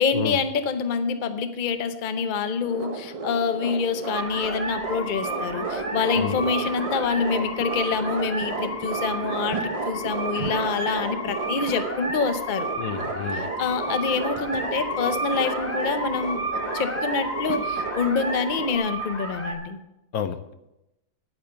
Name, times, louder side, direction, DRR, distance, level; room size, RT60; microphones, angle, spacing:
voice 1, 0.0-12.7 13.3-19.8, left 5 dB, 40° left, 9 dB, 0.8 m, -26 dB
sound 1, 2.6-18.8, right 4 dB, 30° right, 0.7 m, -33 dB
sound 2, 4.1-19.5, right 1 dB, 10° left, 2.4 m, -32 dB
voice 2, 12.8-13.5 20.1-20.5, left 8 dB, 70° left, 10 dB, 1.1 m, -30 dB
10.5 x 8.6 x 6.7 m, 0.90 s
omnidirectional pair, 1.7 m